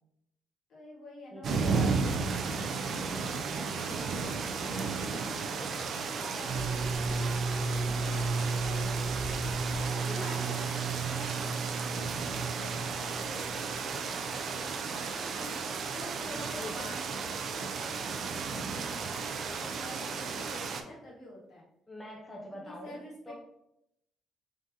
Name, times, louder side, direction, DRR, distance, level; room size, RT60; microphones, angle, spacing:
voice 1, 0.7-8.6 9.7-21.6 22.5-23.3, left 1 dB, 55° left, -5 dB, 1.5 m, -48 dB
voice 2, 1.3-2.0 8.5-9.0 9.9-11.1 14.9-15.1 16.5-16.9 21.9-23.0 23.3-23.4, left 1 dB, 5° left, -3 dB, 0.6 m, -44 dB
sound 1, 1.4-20.8, right 5 dB, 50° right, 0.4 m, -34 dB
sound 2, 6.4-14.2, right 3 dB, 85° right, 0.8 m, -34 dB
3.7 x 3.7 x 2.7 m, 0.80 s
cardioid pair, 165°, 0 cm